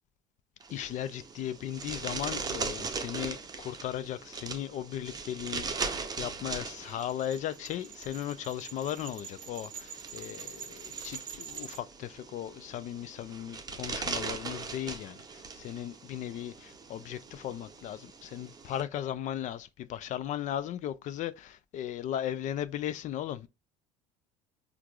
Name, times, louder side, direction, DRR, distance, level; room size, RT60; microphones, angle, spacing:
sound 1, 0.6-18.8, right 4 dB, 25° right, 0.6 m, -40 dB
voice 1, 0.7-23.5, left 11 dB, 50° left, 0.4 m, -37 dB
sound 2, 6.4-11.8, right 8 dB, 60° right, 0.7 m, -46 dB
4.5 x 2.5 x 2.3 m
supercardioid pair, 85°, 16 cm